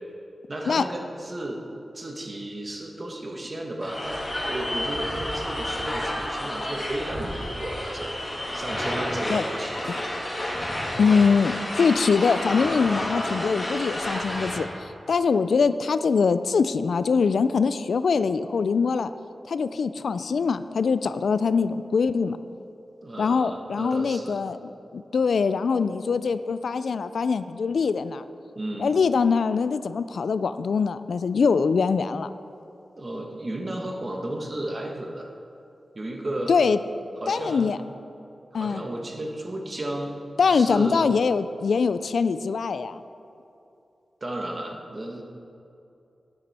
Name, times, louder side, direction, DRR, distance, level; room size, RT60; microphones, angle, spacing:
voice 1, 0.5-1.6 1.9-8.1 8.5-10.0 23.0-24.4 28.5-29.0 32.9-35.3 35.9-36.5 37.2-37.7 38.5-40.1 40.5-41.1 44.2-45.2, right 1 dB, 35° right, 1 dB, 1.3 m, -33 dB
sound 1, 3.8-14.6, left 1 dB, 30° left, 2.2 m, -30 dB
voice 2, 11.0-14.7 15.1-19.1 19.5-22.4 23.2-24.6 24.9-28.2 28.8-32.3 36.5-36.8 37.3-37.8 38.5-38.8 40.4-43.0, left 5 dB, 80° left, 13 dB, 0.3 m, -23 dB
11.5 x 9.7 x 4.2 m, 2.7 s
wide cardioid pair, 110°, 0 cm